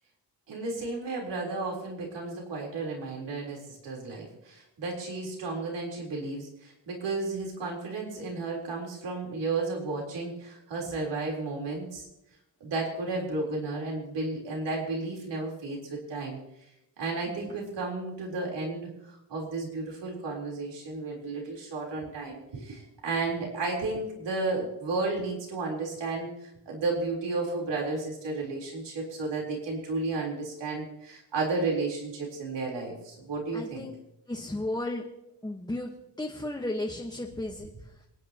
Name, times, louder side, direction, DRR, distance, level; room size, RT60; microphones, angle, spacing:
voice 1, 0.5-12.1 12.6-16.4 17.0-18.9 19.3-33.9, right 3 dB, 85° right, -1 dB, 3.7 m, -33 dB
voice 2, 33.5-33.9 34.3-35.0 35.4-35.9 36.2-37.7, left 1 dB, 10° left, 0 dB, 1.2 m, -33 dB
27.5 x 9.7 x 2.9 m, 0.86 s
wide cardioid pair, 130°, 41 cm